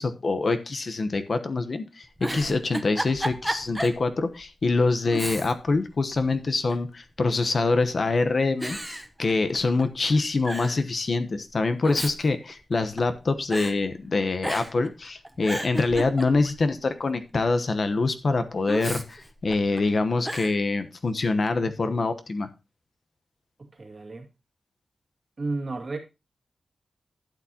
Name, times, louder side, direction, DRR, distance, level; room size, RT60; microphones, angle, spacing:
voice 1, 0.0-22.5, left 3 dB, 50° left, 1.0 m, -25 dB
Giggle, 2.0-4.0 4.4-4.5 5.1-5.8 6.1-6.9 7.7-8.1 8.6-9.8 10.1-10.2 10.4-10.8 11.6-13.2 13.5-13.8 14.4-14.9 15.2-16.6 18.7-19.8 20.2-20.6, right 1 dB, 5° right, 0.9 m, -33 dB
voice 2, 23.6-24.3 25.4-26.0, right 3 dB, 40° right, 2.2 m, -33 dB
12.0 x 8.7 x 2.9 m
wide cardioid pair, 140°, 0 cm